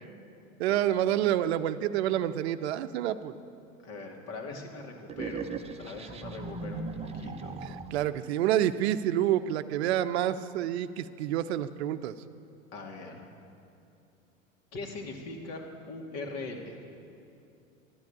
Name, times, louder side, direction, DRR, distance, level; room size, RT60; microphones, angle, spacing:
voice 1, 0.6-3.3 7.6-12.2, right 11 dB, 55° right, 11 dB, 0.8 m, -28 dB
voice 2, 3.8-7.6 12.7-13.3 14.7-16.8, left 3 dB, 40° left, 2 dB, 2.3 m, -41 dB
sound 1, 5.1-8.2, right 4 dB, 15° right, 0.8 m, -38 dB
13.0 x 12.0 x 8.5 m, 2.6 s
figure-of-eight pair, 85°, 40 cm